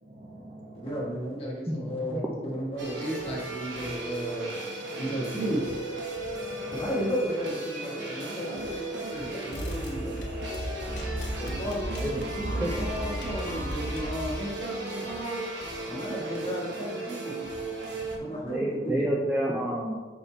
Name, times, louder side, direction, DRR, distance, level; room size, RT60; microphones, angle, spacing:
voice 1, 0.0-1.1 5.1-5.2 6.2-6.8 10.7-11.8 15.9-16.2 17.9-18.5, right 1 dB, 40° right, -2 dB, 1.2 m, -47 dB
voice 2, 0.7-4.5 5.0-5.7 6.8-10.2 11.4-15.5 15.9-17.4 18.2-19.1, equal, 30° left, -4 dB, 1.5 m, -33 dB
voice 3, 1.7-2.2 12.0-12.2 12.6-12.9 18.4-19.9, right 1 dB, 10° right, -4 dB, 0.6 m, -29 dB
sound 1, 2.8-18.2, right 2 dB, 85° right, 1.0 m, -36 dB
sound 2, 9.5-14.3, equal, 65° left, 1.2 m, -34 dB
5.6 x 4.2 x 4.4 m, 1.4 s
head